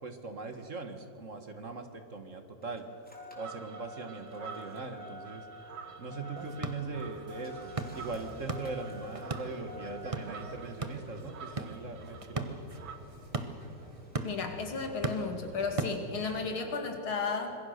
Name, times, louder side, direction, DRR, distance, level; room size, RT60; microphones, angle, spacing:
voice 1, 0.0-2.9 3.4-5.5 6.0-12.6, right 3 dB, 40° right, 7 dB, 1.7 m, -40 dB
Engine starting, 1.5-16.6, equal, 5° left, 3.8 m, -50 dB
sound 1, 3.4-13.0, right 6 dB, 75° right, 2.1 m, -50 dB
sound 2, 6.4-16.5, right 3 dB, 20° right, 0.9 m, -40 dB
voice 2, 14.2-17.5, left 4 dB, 90° left, 4 dB, 3.3 m, -34 dB
26.0 x 21.5 x 6.6 m, 3.0 s
omnidirectional pair, 2.2 m